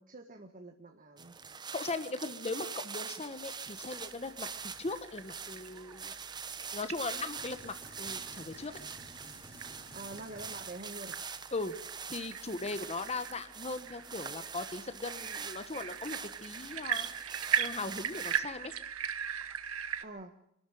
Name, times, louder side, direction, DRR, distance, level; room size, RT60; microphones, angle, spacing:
voice 1, 0.0-1.3 9.9-11.2 20.0-20.3, right 2 dB, 40° right, 4 dB, 1.6 m, -46 dB
sound 1, 1.2-18.4, right 6 dB, 20° right, 0.9 m, -44 dB
voice 2, 1.7-4.5 4.8-6.1 6.7-8.8 11.5-11.8 12.1-17.1 17.6-18.7, left 3 dB, 30° left, 10 dB, 1.1 m, -39 dB
sound 2, 3.6-20.0, right 8 dB, 90° right, 1.4 m, -40 dB
sound 3, 7.4-11.0, equal, 5° left, 3.3 m, -54 dB
25.5 x 12.5 x 9.1 m, 0.78 s
head